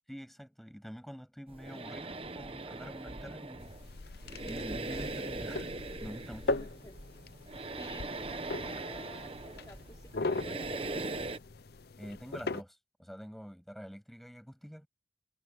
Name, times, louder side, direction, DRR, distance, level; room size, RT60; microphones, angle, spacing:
voice 1, 0.1-3.7 4.4-5.7 6.0-6.6 12.0-14.9, equal, ahead, 7.9 m, -46 dB
sound 1, 1.5-11.4, right 2 dB, 30° right, 1.0 m, -41 dB
sound 2, 3.6-12.6, left 3 dB, 55° left, 0.6 m, -40 dB
voice 2, 6.5-7.0 7.8-11.2, left 1 dB, 20° left, 3.7 m, -52 dB
head